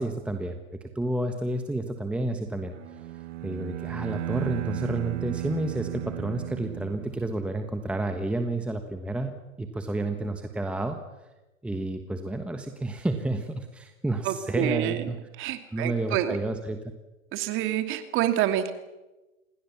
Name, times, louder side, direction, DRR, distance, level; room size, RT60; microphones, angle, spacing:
voice 1, 0.0-2.7 3.4-9.3 9.6-11.0 11.6-15.2 15.7-16.9, right 2 dB, 5° right, 6 dB, 1.3 m, -30 dB
Bowed string instrument, 2.7-7.5, right 14 dB, 60° right, 1.8 m, -35 dB
voice 2, 14.2-15.1 15.4-16.4 17.3-18.7, right 12 dB, 30° right, 8 dB, 2.6 m, -27 dB
28.0 x 21.0 x 7.2 m, 1.1 s
hypercardioid pair, 130°, 41 cm